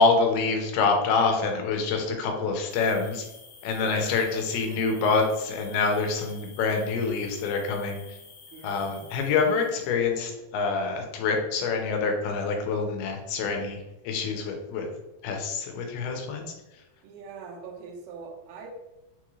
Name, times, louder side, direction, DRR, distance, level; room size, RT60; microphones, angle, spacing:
voice 1, 0.0-3.3 3.6-8.2 8.6-14.9 15.2-16.8, left 4 dB, 85° left, 3 dB, 2.7 m, -26 dB
sound 1, 2.7-10.0, left 5 dB, 70° left, 1.8 m, -50 dB
voice 2, 3.8-4.2 4.9-5.0 8.5-9.0 17.0-18.7, right 4 dB, 85° right, 1 dB, 2.7 m, -42 dB
6.3 x 2.4 x 3.0 m, 0.99 s
omnidirectional pair, 4.4 m